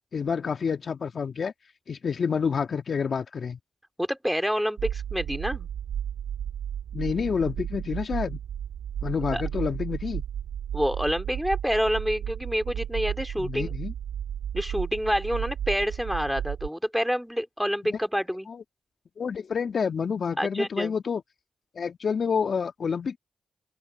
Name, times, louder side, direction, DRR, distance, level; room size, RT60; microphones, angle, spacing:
voice 1, 0.1-1.5 1.9-3.6 6.9-8.4 9.0-10.2 13.4-13.9 17.9-18.0 18.5-18.6 19.2-21.2 21.8-23.2, left 6 dB, 60° left, 2.0 m, -28 dB
voice 2, 4.0-5.7 9.3-9.4 10.7-13.7 14.5-18.5 20.4-20.9, equal, ahead, 3.9 m, -27 dB
sound 1, 4.8-16.7, right 9 dB, 75° right, 6.0 m, -33 dB
open air
supercardioid pair, 45°, 0 cm